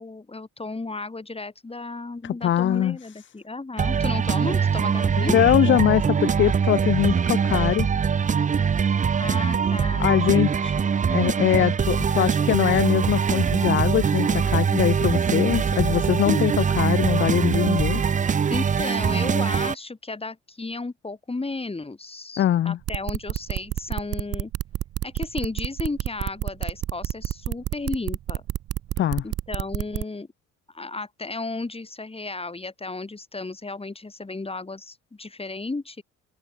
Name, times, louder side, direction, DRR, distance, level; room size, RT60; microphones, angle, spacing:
voice 1, 0.0-5.4 8.9-10.4 16.2-16.4 18.5-24.5 25.0-28.4 29.2-30.3 30.7-36.0, left 3 dB, 15° left, 3.0 m, -33 dB
voice 2, 2.2-3.0 5.2-7.9 10.0-10.8 11.1-18.0 22.4-22.8 29.0-29.2, left 11 dB, 35° left, 0.5 m, -22 dB
sound 1, 3.8-19.7, right 6 dB, 25° right, 0.6 m, -22 dB
sound 2, 22.9-30.0, right 12 dB, 50° right, 0.9 m, -28 dB
open air
hypercardioid pair, 60°, 33 cm